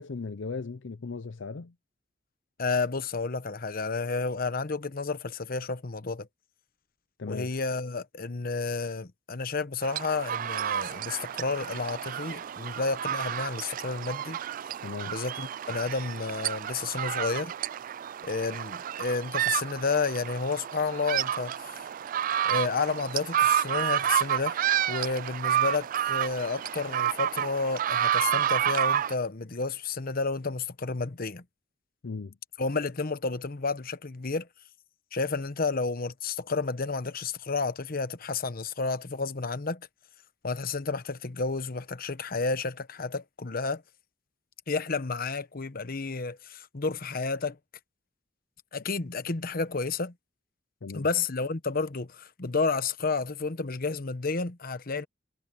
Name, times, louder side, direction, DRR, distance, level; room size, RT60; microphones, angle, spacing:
voice 1, 0.0-1.7 7.2-7.5 14.8-15.1 32.0-32.4 50.8-51.1, left 4 dB, 80° left, 0.6 m, -37 dB
voice 2, 2.6-6.3 7.3-14.4 15.1-17.5 18.2-21.8 22.4-31.4 32.6-34.5 35.1-39.9 40.4-43.8 44.7-47.6 48.7-50.1 50.9-55.1, left 4 dB, 50° left, 1.0 m, -31 dB
sound 1, 9.8-29.1, right 10 dB, 45° right, 0.3 m, -30 dB
head